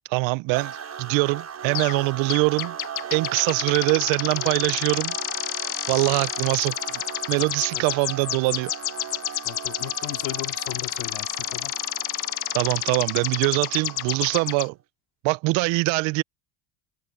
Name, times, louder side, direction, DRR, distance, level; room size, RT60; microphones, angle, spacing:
voice 1, 0.1-2.8 3.1-5.2 5.9-6.8 7.3-8.7 12.5-14.8 15.2-16.2, right 26 dB, 70° right, 0.6 m, -23 dB
sound 1, 0.5-14.7, right 8 dB, 30° right, 4.2 m, -38 dB
sound 2, 1.8-2.0 2.3-14.7, left 15 dB, 50° left, 1.2 m, -30 dB
voice 2, 9.4-11.7, left 19 dB, 75° left, 3.4 m, -36 dB
cardioid pair, 120°, 47 cm